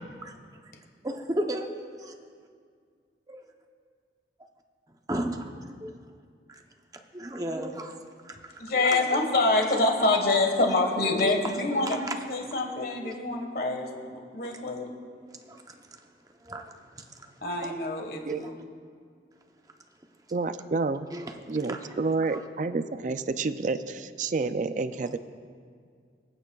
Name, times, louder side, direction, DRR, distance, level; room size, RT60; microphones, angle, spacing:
voice 1, 1.0-2.2 3.3-3.4 5.1-6.0 6.5-6.6 7.1-9.3 9.5-12.2 13.1-13.2 14.4-14.6 15.3-16.1 16.4-17.7 18.3-18.5 21.1-21.9 22.3-22.4, right 1 dB, 20° right, 3 dB, 0.7 m, -36 dB
voice 2, 8.6-12.0 12.3-14.9 17.4-18.5, left 2 dB, 55° left, 3 dB, 1.5 m, -26 dB
voice 3, 20.3-21.2 21.5-25.2, right 3 dB, 45° right, 11 dB, 0.4 m, -29 dB
26.0 x 8.9 x 2.4 m, 2.1 s
head